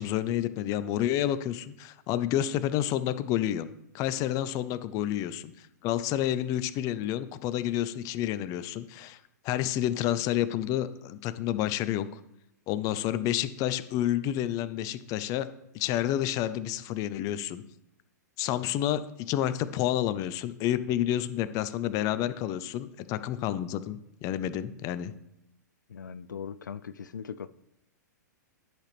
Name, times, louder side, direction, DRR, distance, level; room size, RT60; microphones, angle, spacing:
voice 1, 0.0-3.7 3.9-9.2 9.4-12.1 12.7-15.5 15.7-17.6 18.4-25.1, left 12 dB, 35° left, 0.5 m, -29 dB
voice 2, 25.9-27.5, left 7 dB, 90° left, 0.4 m, -39 dB
10.5 x 6.0 x 3.3 m
hypercardioid pair, 115°, 10 cm